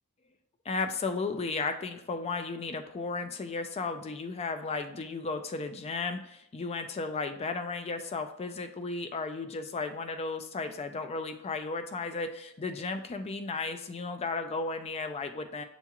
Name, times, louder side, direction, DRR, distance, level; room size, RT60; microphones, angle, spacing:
voice 1, 0.7-15.6, left 4 dB, 30° left, 7 dB, 0.3 m, -34 dB
6.9 x 2.3 x 2.9 m, 0.77 s
head